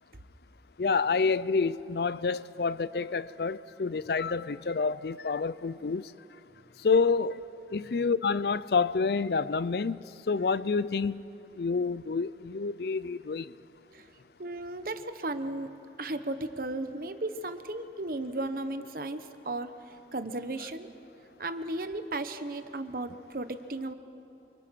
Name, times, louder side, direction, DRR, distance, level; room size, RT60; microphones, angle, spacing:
voice 1, 0.8-6.1 6.8-7.4 7.7-11.2 11.5-13.5, left 4 dB, 65° left, 0.5 m, -28 dB
voice 2, 14.4-20.9 21.4-23.9, right 2 dB, 55° right, 1.1 m, -35 dB
28.0 x 25.5 x 5.9 m
head